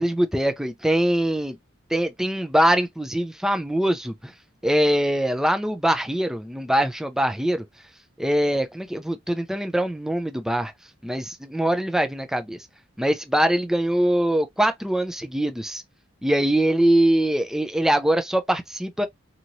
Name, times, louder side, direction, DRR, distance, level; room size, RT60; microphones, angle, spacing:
voice 1, 0.0-1.6 1.9-4.3 4.6-7.6 8.2-10.7 11.0-12.6 13.0-15.8 16.2-19.1, right 1 dB, ahead, 0.3 m, -23 dB
2.9 x 2.7 x 2.5 m
head